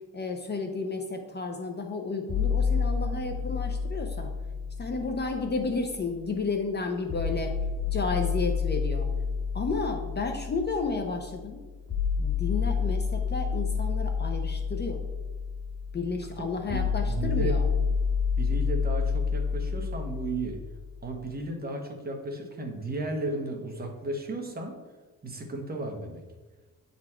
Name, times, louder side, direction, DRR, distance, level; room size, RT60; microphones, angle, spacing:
voice 1, 0.1-4.3 4.8-7.5 7.9-9.1 9.5-11.6 12.2-15.0 15.9-17.6, left 4 dB, 30° left, 4 dB, 0.7 m, -32 dB
sound 1, 2.3-6.3 7.1-21.1, left 5 dB, 60° left, 2.0 m, -29 dB
voice 2, 16.7-17.6 18.4-20.6 21.0-24.8 25.2-26.2, right 2 dB, 25° right, 2 dB, 1.2 m, -34 dB
9.3 x 4.2 x 4.4 m, 1.3 s
cardioid pair, 150°, 34 cm